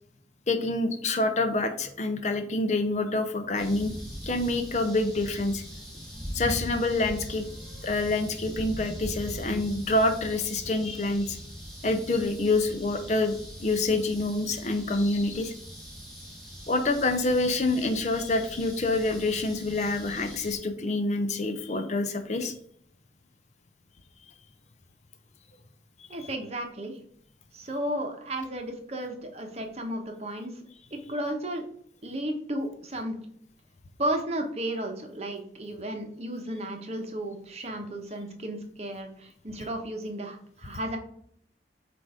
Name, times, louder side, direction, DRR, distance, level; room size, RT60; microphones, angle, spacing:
voice 1, 0.5-3.9 4.2-5.6 6.3-7.5 7.8-11.4 11.8-13.3 13.6-15.5 16.7-22.5 26.0-26.3, left 2 dB, 40° left, 7 dB, 0.6 m, -27 dB
sound 1, 3.6-20.6, equal, ahead, 1.7 m, -41 dB
voice 2, 26.1-27.0 27.5-30.6 30.9-31.6 32.0-33.2 34.0-41.0, right 1 dB, 35° right, 3 dB, 0.9 m, -33 dB
7.6 x 2.6 x 4.8 m, 0.65 s
head